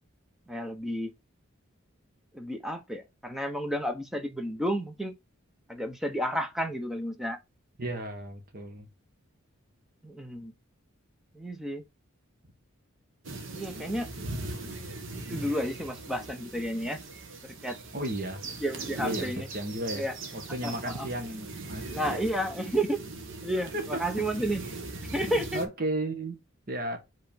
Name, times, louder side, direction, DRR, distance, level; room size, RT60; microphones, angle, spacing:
voice 1, 0.5-1.1 2.3-5.1 5.7-7.4 10.0-10.5 11.4-11.8 13.5-14.1 15.3-17.0 17.4-17.8 18.6-19.5 20.0-20.1 20.6-21.1 21.9-23.0 23.4-23.7 24.0-24.6 25.1-25.6, equal, ahead, 0.9 m, -31 dB
voice 2, 7.8-8.9 17.9-18.4 19.0-20.1 20.3-22.2 23.7-24.0 25.5-26.4 26.7-27.0, right 1 dB, 45° right, 1.2 m, -34 dB
sound 1, 13.2-25.6, right 3 dB, 65° right, 1.4 m, -40 dB
5.1 x 4.0 x 5.1 m
head